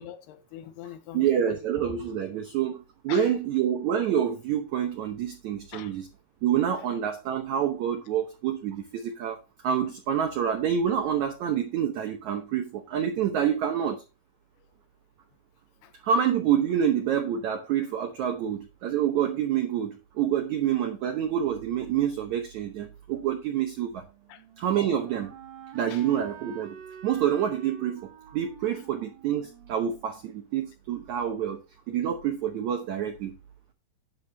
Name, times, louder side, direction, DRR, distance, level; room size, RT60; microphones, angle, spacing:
voice 1, 0.0-1.4 3.1-3.3 5.7-6.0 15.8-15.9 24.3-24.4 25.9-26.1, left 11 dB, 80° left, 2.8 m, -43 dB
voice 2, 1.1-6.1 6.4-14.0 16.0-24.1 24.6-25.3 25.7-26.8 27.0-31.6 31.9-33.3, right 9 dB, 90° right, 1.6 m, -27 dB
Wind instrument woodwind instrument, 23.9-30.8, right 6 dB, 65° right, 1.8 m, -48 dB
10.5 x 8.1 x 2.8 m
omnidirectional pair, 4.7 m